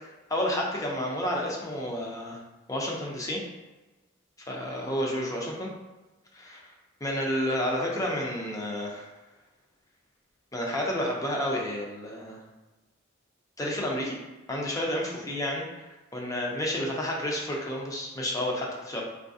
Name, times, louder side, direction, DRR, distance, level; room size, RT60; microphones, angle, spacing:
voice 1, 0.3-2.4 2.7-3.4 4.5-5.7 6.3-6.7 7.0-9.1 10.5-12.4 13.6-14.2 14.5-19.0, left 1 dB, 15° left, -2 dB, 0.5 m, -30 dB
3.8 x 2.4 x 2.6 m, 1.1 s
head